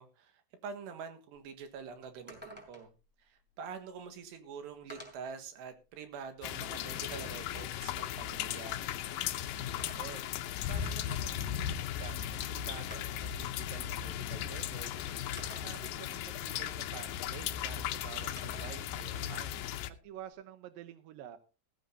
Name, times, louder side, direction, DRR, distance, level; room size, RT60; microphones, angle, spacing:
voice 1, 0.0-2.9 3.2-8.9, right 6 dB, 90° right, 8 dB, 3.8 m, -46 dB
sound 1, 1.3-1.4 1.8-1.9 2.3-3.0 4.1-4.2 4.9-5.4 5.9-7.4 9.6-10.6 12.0-12.1 12.9-13.4 14.4-14.5 15.4-16.0 18.4-18.8 19.2-20.3, equal, 5° right, 3.6 m, -51 dB
sound 2, 6.4-19.9, left 10 dB, 75° left, 2.1 m, -37 dB
voice 2, 9.7-10.2 10.7-15.1 15.5-21.4, right 11 dB, 70° right, 10 dB, 2.3 m, -50 dB
15.5 x 14.5 x 2.8 m, 0.32 s
omnidirectional pair, 4.8 m